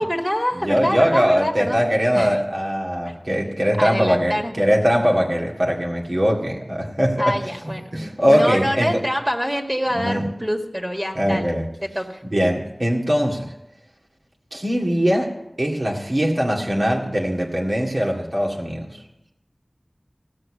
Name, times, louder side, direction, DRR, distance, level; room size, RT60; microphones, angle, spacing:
voice 1, 0.0-2.4 3.1-3.2 3.8-4.6 7.2-12.2, equal, 20° right, 2 dB, 1.9 m, -26 dB
voice 2, 0.6-7.4 7.9-9.0 10.0-10.3 11.2-11.7 12.3-13.5 14.5-19.0, equal, 70° right, -2 dB, 2.1 m, -21 dB
16.0 x 6.5 x 8.6 m, 0.86 s
wide cardioid pair, 45°, 0 cm